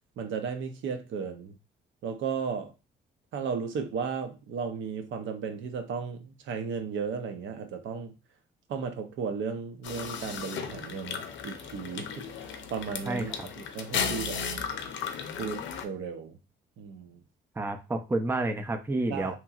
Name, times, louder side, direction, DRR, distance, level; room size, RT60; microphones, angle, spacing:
voice 1, 0.2-1.5 2.0-2.7 3.3-8.1 8.7-12.3 12.7-14.4 15.4-16.4 16.8-17.2 19.1-19.4, right 6 dB, 75° right, 0.6 m, -35 dB
sound 1, 9.8-15.8, left 6 dB, 70° left, 0.5 m, -35 dB
voice 2, 13.1-13.5 17.6-19.4, right 2 dB, 10° right, 0.4 m, -30 dB
2.9 x 2.6 x 2.3 m
cardioid pair, 90°, 20 cm